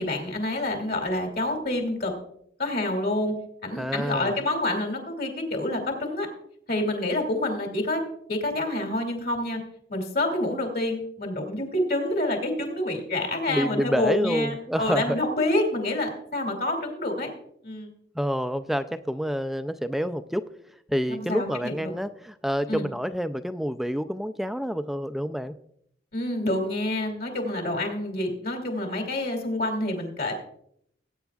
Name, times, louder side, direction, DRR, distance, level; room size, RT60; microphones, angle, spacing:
voice 1, 0.0-2.1 2.6-3.3 3.6-6.3 6.7-8.0 8.3-9.6 9.9-17.3 17.6-17.9 21.1-21.9 22.7-22.9 26.1-30.3, left 1 dB, 55° left, 3 dB, 2.5 m, -27 dB
voice 2, 3.8-4.4 13.5-15.2 18.2-20.5 20.9-25.5, equal, ahead, 11 dB, 0.3 m, -28 dB
19.5 x 9.0 x 2.4 m, 0.69 s
head